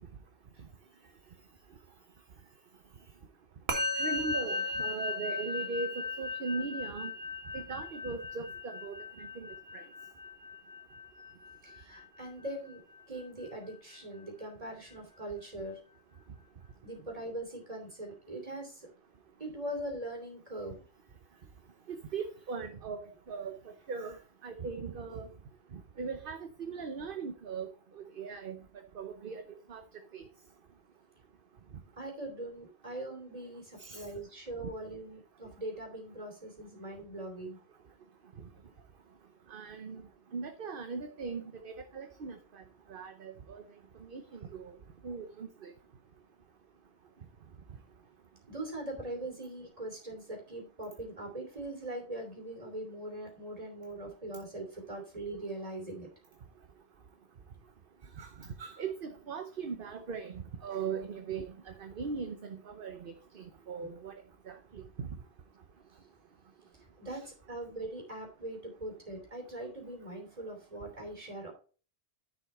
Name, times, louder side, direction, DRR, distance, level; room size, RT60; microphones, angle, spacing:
Musical instrument, 3.7-13.2, left 3 dB, 80° right, 1.7 m, -37 dB
voice 1, 3.9-7.1 7.5-9.8 21.9-23.6 23.9-24.2 24.4-25.3 25.7-27.7 28.0-28.6 28.9-29.8 30.1-30.2 33.8-34.0 39.5-40.0 40.3-42.6 42.9-43.6 44.0-44.8 45.0-45.7 58.2-64.1 64.5-65.1 67.1-67.2, right 5 dB, 60° right, 1.1 m, -39 dB
voice 2, 11.6-12.8 13.1-15.8 16.8-18.9 19.4-20.8 32.0-37.6 48.5-56.1 67.0-71.5, right 1 dB, 35° right, 3.2 m, -41 dB
10.5 x 5.4 x 4.3 m
omnidirectional pair, 1.1 m